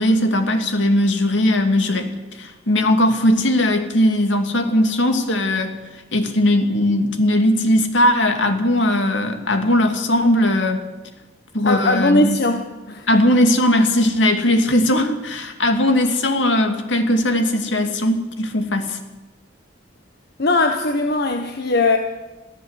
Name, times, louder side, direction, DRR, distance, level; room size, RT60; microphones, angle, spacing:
voice 1, 0.0-2.1 2.4-5.8 6.1-10.9 11.5-12.4 13.1-19.0, left 1 dB, 75° left, 6 dB, 2.5 m, -18 dB
voice 2, 11.6-12.6 12.9-13.2 20.4-22.0, left 2 dB, 60° left, 5 dB, 1.3 m, -19 dB
22.5 x 14.5 x 8.2 m, 1.1 s
head